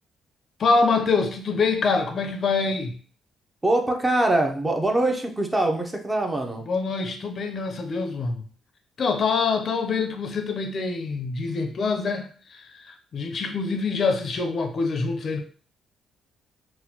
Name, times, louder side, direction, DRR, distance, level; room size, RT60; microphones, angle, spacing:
voice 1, 0.6-3.0 6.7-8.4 9.0-15.4, left 4 dB, 50° left, 0.5 m, -25 dB
voice 2, 3.6-6.7, right 1 dB, 15° right, 0.6 m, -23 dB
4.0 x 2.2 x 2.8 m
cardioid pair, 90°, 0 cm